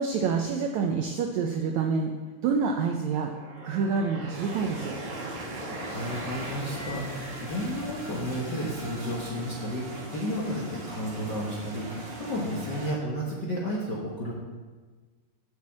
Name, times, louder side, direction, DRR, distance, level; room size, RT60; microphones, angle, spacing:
voice 1, 0.0-2.1 2.4-3.3 3.6-5.0, right 5 dB, 85° right, 3 dB, 1.6 m, -27 dB
sound 1, 3.0-8.0, right 1 dB, 60° right, 3.0 m, -41 dB
sound 2, 4.3-12.9, right 1 dB, 45° right, 2.7 m, -40 dB
voice 2, 5.6-14.3, equal, 75° left, -5 dB, 1.0 m, -32 dB
sound 3, 5.9-9.4, left 1 dB, 5° right, 3.3 m, -45 dB
7.4 x 7.3 x 7.5 m, 1.4 s
omnidirectional pair, 4.1 m